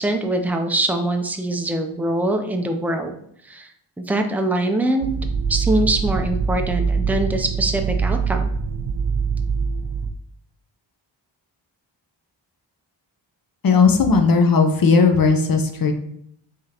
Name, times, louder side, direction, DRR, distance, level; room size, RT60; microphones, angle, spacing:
voice 1, 0.0-3.1 3.5-3.7 4.1-5.1 5.5-8.5, right 1 dB, 5° right, 4 dB, 0.4 m, -23 dB
sound 1, 5.0-10.1, right 5 dB, 60° right, 0.5 m, -23 dB
voice 2, 13.6-15.9, left 4 dB, 45° left, 5 dB, 0.7 m, -16 dB
5.0 x 3.6 x 2.9 m, 0.69 s
wide cardioid pair, 115°, 47 cm